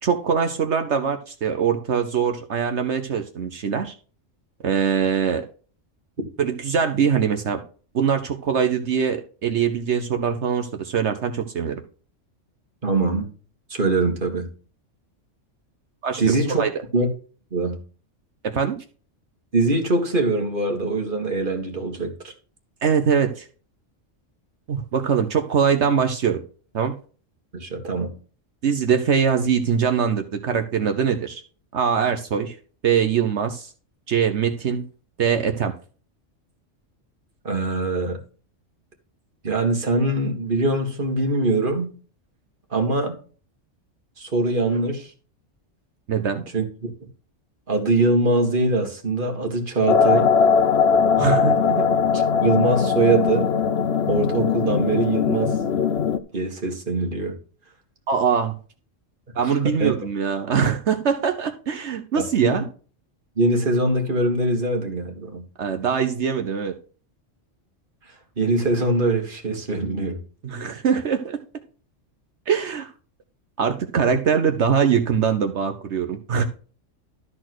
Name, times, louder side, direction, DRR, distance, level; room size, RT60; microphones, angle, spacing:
voice 1, 0.0-3.9 4.6-5.4 6.4-7.6 7.9-11.8 16.0-16.7 18.4-18.8 22.8-23.4 24.7-26.4 26.7-26.9 28.6-31.4 31.7-32.5 32.8-33.7 34.1-34.8 35.2-35.7 46.1-46.4 51.2-51.9 58.1-58.5 59.3-62.6 65.6-66.7 70.4-71.4 72.5-72.9 73.6-76.4, right 7 dB, 65° right, 6 dB, 1.1 m, -22 dB
voice 2, 12.8-13.3 13.7-14.5 16.2-16.6 16.9-17.1 17.5-17.8 19.5-22.3 27.5-28.1 37.4-38.2 39.4-41.9 42.7-43.2 44.2-45.1 46.5-46.6 47.7-50.3 52.1-53.5 54.1-55.6 56.3-57.4 59.4-59.9 62.2-62.7 63.4-65.5 68.4-70.2, right 2 dB, 40° right, 2 dB, 2.1 m, -22 dB
sound 1, 49.9-56.2, left 6 dB, 60° left, 0.9 m, -20 dB
12.5 x 4.4 x 6.1 m, 0.39 s
omnidirectional pair, 1.3 m